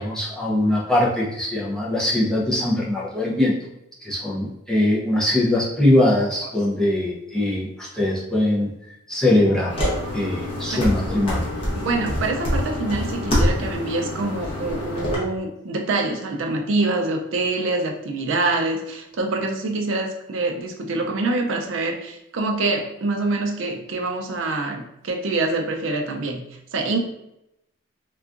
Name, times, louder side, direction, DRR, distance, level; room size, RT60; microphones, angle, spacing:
voice 1, 0.0-3.5 4.0-8.7 9.1-9.8 10.1-11.5, left 1 dB, 5° left, -6 dB, 0.5 m, -21 dB
sound 1, 9.7-15.1, left 1 dB, 30° left, 0.8 m, -25 dB
voice 2, 11.7-26.4 26.7-27.0, right 2 dB, 75° right, 3 dB, 0.4 m, -25 dB
3.7 x 2.3 x 2.4 m, 0.84 s
head